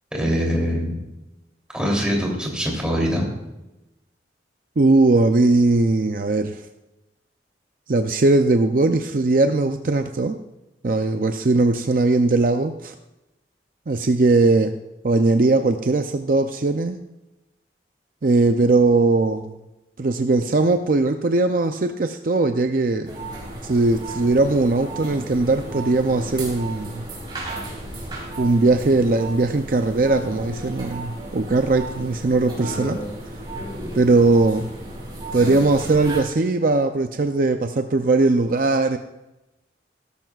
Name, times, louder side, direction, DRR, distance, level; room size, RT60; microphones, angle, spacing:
voice 1, 0.1-1.0 1.7-3.2, equal, 5° right, -2 dB, 3.2 m, -23 dB
voice 2, 4.8-6.6 7.9-10.4 10.8-12.9 13.9-14.8 15.0-17.0 18.2-19.5 20.0-23.1 23.6-27.1 28.4-33.0 33.9-34.7 35.3-39.0, right 3 dB, 50° right, 6 dB, 0.5 m, -19 dB
sound 1, 23.0-36.2, right 1 dB, 25° right, 4.1 m, -34 dB
17.0 x 13.5 x 2.4 m, 0.98 s
head